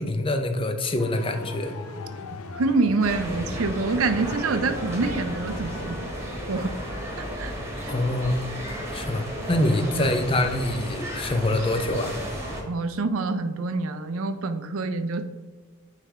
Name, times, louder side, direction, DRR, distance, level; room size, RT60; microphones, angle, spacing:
voice 1, 0.0-1.7 7.9-8.4 8.9-12.2, left 1 dB, 25° left, 7 dB, 0.5 m, -25 dB
sound 1, 1.0-7.5, left 3 dB, 80° left, 0.6 m, -40 dB
voice 2, 2.5-6.1 6.5-6.7 7.2-7.5 7.8-7.9 10.0-10.2 12.7-15.2, right 3 dB, 65° right, 10 dB, 0.5 m, -26 dB
sound 2, 3.0-12.6, equal, 15° right, 1.3 m, -33 dB
9.1 x 3.3 x 3.6 m, 1.3 s
head